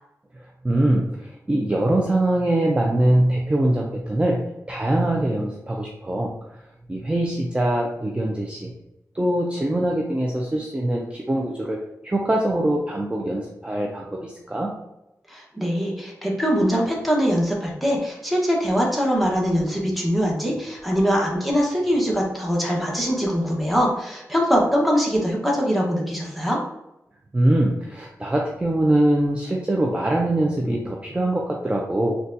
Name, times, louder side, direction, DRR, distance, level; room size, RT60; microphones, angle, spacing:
voice 1, 0.6-6.3 6.9-8.7 9.1-14.7 27.3-32.2, right 1 dB, 20° right, -1 dB, 0.4 m, -23 dB
voice 2, 15.3-26.6, equal, ahead, -3 dB, 1.0 m, -22 dB
4.0 x 2.3 x 2.6 m, 0.89 s
cardioid pair, 65°, 6 cm